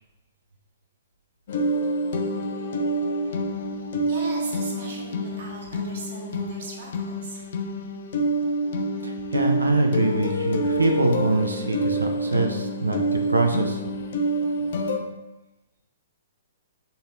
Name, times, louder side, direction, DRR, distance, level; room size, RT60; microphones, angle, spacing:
sound 1, 1.5-15.0, right 1 dB, 50° left, 0.7 m, -27 dB
voice 1, 4.1-7.5, right 2 dB, 55° right, -2 dB, 1.8 m, -39 dB
voice 2, 9.0-13.8, right 2 dB, 75° right, 3 dB, 0.7 m, -24 dB
5.5 x 3.9 x 4.4 m, 1.0 s
figure-of-eight pair, 120°, 0 cm